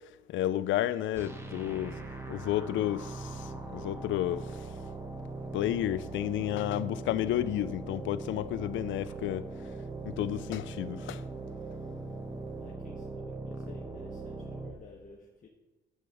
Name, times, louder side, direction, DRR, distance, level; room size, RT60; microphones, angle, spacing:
voice 1, 0.3-2.0 2.3-4.7 5.5-9.4 10.1-11.2, left 13 dB, 75° left, 0.4 m, -31 dB
sound 1, 1.1-14.7, right 3 dB, 10° right, 1.1 m, -40 dB
voice 2, 12.5-15.5, left 4 dB, 40° left, 1.0 m, -52 dB
9.3 x 8.1 x 3.5 m
cardioid pair, 90°, 20 cm